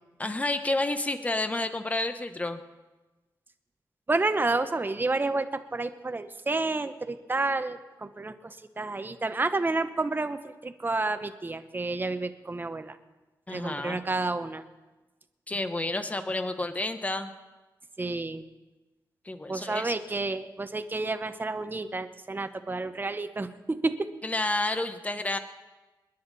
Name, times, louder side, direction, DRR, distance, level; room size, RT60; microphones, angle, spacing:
voice 1, 0.2-2.6 13.5-14.0 15.5-17.3 19.3-20.0 24.2-25.4, left 2 dB, 20° left, 9 dB, 1.0 m, -30 dB
voice 2, 4.1-13.0 13.5-14.6 18.0-18.4 19.5-24.0, right 3 dB, 25° right, 9 dB, 0.9 m, -30 dB
28.5 x 10.0 x 4.1 m, 1.1 s
wide cardioid pair, 105°, 8 cm